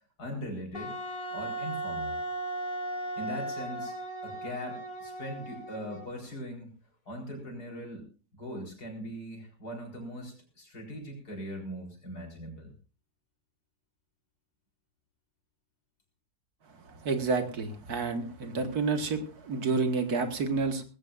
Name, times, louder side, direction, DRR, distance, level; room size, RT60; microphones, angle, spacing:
voice 1, 0.2-0.9 1.3-2.2 3.2-4.0 4.2-6.7 7.1-8.1 8.3-12.7, equal, 75° left, 1 dB, 4.9 m, -40 dB
Wind instrument woodwind instrument, 0.7-6.2, right 2 dB, 60° left, 2.4 m, -37 dB
voice 2, 17.0-20.8, right 4 dB, 70° right, 7 dB, 2.1 m, -29 dB
19.5 x 15.5 x 2.5 m, 0.35 s
omnidirectional pair, 1.7 m